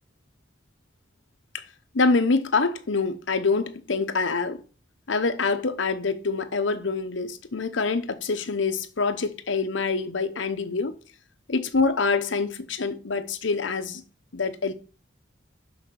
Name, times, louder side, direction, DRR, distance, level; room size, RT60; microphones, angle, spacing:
voice 1, 1.9-4.6 5.1-10.9 11.5-14.0 14.3-14.7, left 4 dB, 85° left, 0.9 m, -25 dB
6.3 x 6.1 x 6.3 m
head